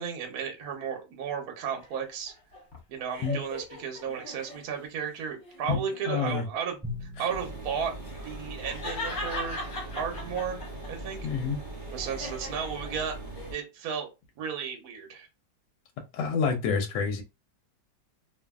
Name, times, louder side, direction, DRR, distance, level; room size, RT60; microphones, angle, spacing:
voice 1, 0.0-2.3 2.9-7.9 8.2-9.6 9.9-10.6 10.9-11.2 11.9-13.2 13.5-14.1 14.4-15.3, right 7 dB, 65° right, 1.0 m, -34 dB
sound 1, 1.8-4.9 5.4-6.1 7.8-10.9 11.3-13.5, left 1 dB, 50° left, 1.1 m, -40 dB
voice 2, 5.7-6.5 11.2-11.6 16.1-17.2, left 5 dB, 85° left, 1.3 m, -28 dB
Drum, 6.8-9.2, left 2 dB, 5° left, 0.9 m, -43 dB
sound 2, 7.3-13.5, right 2 dB, 90° right, 0.4 m, -40 dB
2.7 x 2.5 x 2.2 m
omnidirectional pair, 2.0 m